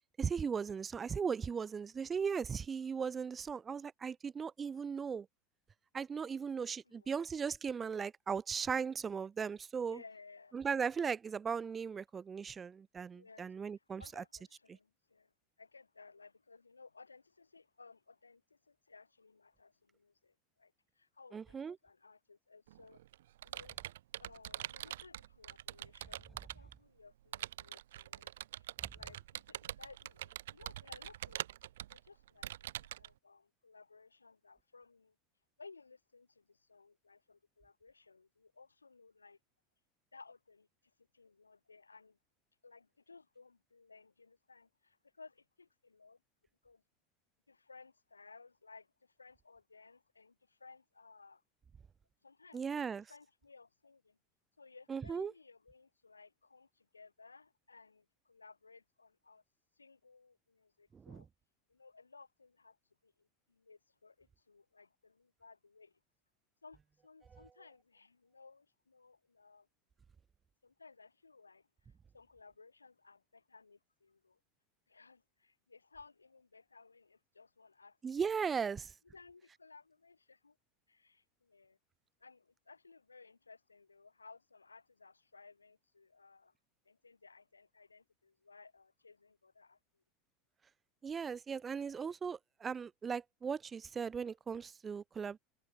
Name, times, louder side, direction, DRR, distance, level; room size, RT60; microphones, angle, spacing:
voice 1, 0.2-5.3 5.9-10.0 10.5-14.2 14.7-14.8 21.3-21.8 52.5-53.0 54.9-55.3 60.9-61.2 67.3-67.4 78.0-78.9 91.0-95.4, right 6 dB, 25° right, 1.0 m, -37 dB
voice 2, 6.9-7.2 9.8-10.6 13.1-15.3 15.6-23.0 23.4-23.8 24.2-31.4 31.9-35.2 35.6-39.4 40.1-40.7 41.0-42.2 42.6-46.2 46.6-46.8 47.5-51.4 52.2-54.2 54.6-59.4 59.8-61.3 61.7-62.8 63.0-66.0 66.6-69.7 70.6-74.4 74.9-78.1 79.1-80.6 80.9-81.8 82.2-86.5 86.8-90.0, left 4 dB, 85° left, 2.3 m, -59 dB
Computer keyboard, 22.7-26.7 27.3-33.1, right 13 dB, 65° right, 1.5 m, -44 dB
figure-of-eight pair, 80°, 0 cm